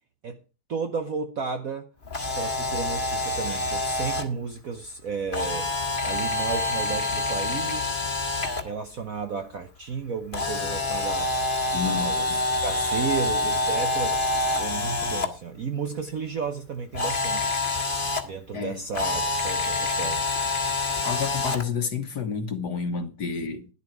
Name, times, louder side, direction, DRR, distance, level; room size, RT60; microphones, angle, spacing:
voice 1, 0.7-1.9 2.3-5.7 6.0-8.0 8.6-11.3 11.8-14.2 14.6-17.6 18.2-20.3, right 5 dB, 55° right, 1.0 m, -33 dB
Camera, 2.0-4.2 5.3-8.6 10.3-15.3 16.9-18.2 18.9-21.6, left 2 dB, 25° left, 1.6 m, -27 dB
voice 2, 11.7-12.4 18.5-18.8 21.0-23.7, left 6 dB, 55° left, 1.7 m, -30 dB
12.0 x 11.0 x 4.6 m
omnidirectional pair, 2.3 m